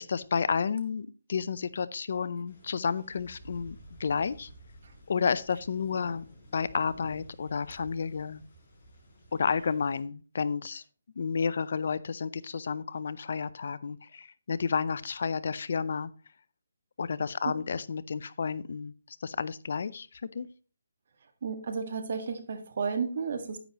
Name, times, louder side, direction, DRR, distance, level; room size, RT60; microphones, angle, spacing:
voice 1, 0.0-4.5 5.1-6.2 6.5-8.4 9.3-10.8 11.2-16.1 17.0-20.5, left 5 dB, 55° left, 16 dB, 0.5 m, -31 dB
sound 1, 2.5-10.0, equal, 25° left, 5.8 m, -53 dB
voice 2, 21.4-23.6, right 5 dB, 50° right, 7 dB, 1.7 m, -32 dB
10.0 x 9.3 x 3.0 m, 0.36 s
hypercardioid pair, 165°, 0 cm